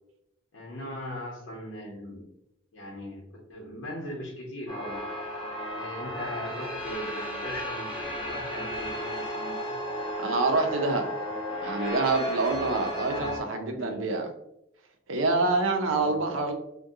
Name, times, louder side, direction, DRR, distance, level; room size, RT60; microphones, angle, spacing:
voice 1, 0.5-2.3 2.7-5.0 5.7-9.8 13.0-14.2 15.8-16.2, equal, 85° left, -4 dB, 0.8 m, -39 dB
sound 1, 4.7-13.4, equal, 25° left, 0.8 m, -34 dB
voice 2, 10.2-11.1 11.6-14.3 15.1-16.5, right 3 dB, 85° right, 4 dB, 0.6 m, -26 dB
3.6 x 2.2 x 2.6 m, 0.81 s
head